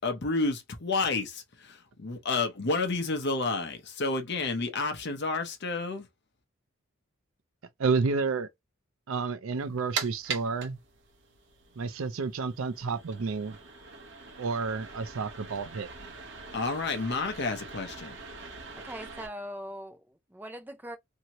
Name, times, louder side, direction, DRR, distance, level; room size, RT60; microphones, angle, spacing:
voice 1, 0.0-6.1 16.5-18.1, left 3 dB, 55° left, 0.7 m, -30 dB
voice 2, 7.8-8.5 9.1-10.8 11.8-13.6 14.4-16.1, right 4 dB, 75° right, 0.5 m, -30 dB
sound 1, 9.6-19.3, right 5 dB, 60° right, 0.9 m, -42 dB
voice 3, 18.7-21.0, equal, 10° right, 0.5 m, -41 dB
2.9 x 2.8 x 2.9 m
head